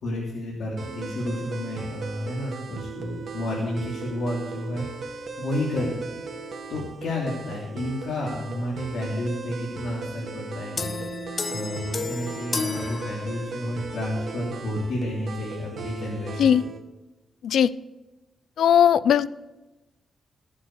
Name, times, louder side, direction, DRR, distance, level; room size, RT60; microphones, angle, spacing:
voice 1, 0.0-6.1 6.7-16.6, left 1 dB, 70° left, -5 dB, 3.3 m, -31 dB
sound 1, 0.8-16.8, right 5 dB, 50° right, 1.4 m, -38 dB
sound 2, 10.8-13.8, left 4 dB, 30° left, 0.5 m, -32 dB
voice 2, 18.6-19.3, left 9 dB, 90° left, 18 dB, 0.5 m, -18 dB
20.0 x 7.8 x 6.7 m, 1.1 s
wide cardioid pair, 155°, 0 cm